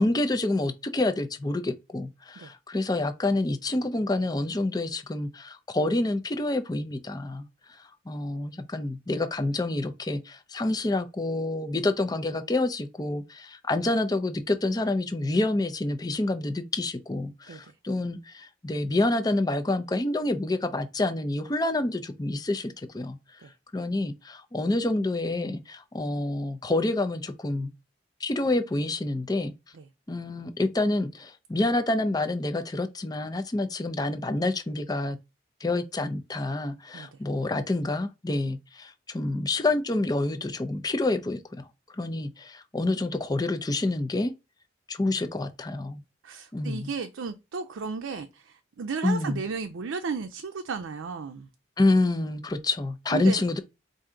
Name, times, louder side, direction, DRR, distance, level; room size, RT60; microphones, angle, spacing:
voice 1, 0.0-23.2 23.7-27.7 28.2-29.5 30.1-35.2 35.6-41.7 42.0-44.3 44.9-46.0 46.5-46.9 49.0-49.4 51.8-53.6, left 2 dB, 20° left, 0.4 m, -28 dB
voice 2, 46.2-51.5 53.1-53.4, right 5 dB, 85° right, 0.5 m, -34 dB
4.5 x 2.6 x 3.7 m
head